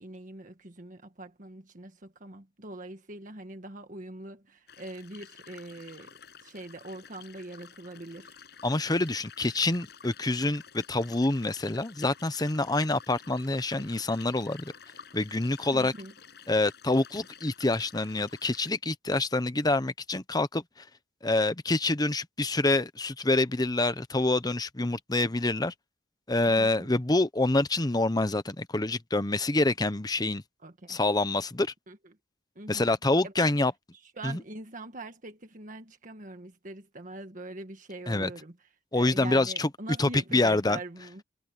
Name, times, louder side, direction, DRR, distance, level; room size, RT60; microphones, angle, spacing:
voice 1, 0.0-8.4 15.7-16.1 26.5-27.0 30.6-31.0 31.9-32.0 32.5-32.9 33.2-33.6 34.0-41.2, right 2 dB, 45° right, 1.5 m, -43 dB
sound 1, 4.7-18.7, left 7 dB, 65° left, 6.7 m, -51 dB
voice 2, 8.6-14.7 15.1-15.9 16.5-20.6 21.2-25.7 26.3-30.4 30.9-31.7 32.7-33.7 34.2-34.4 38.1-38.3 38.9-39.7 40.0-40.8, left 2 dB, 20° left, 0.9 m, -26 dB
head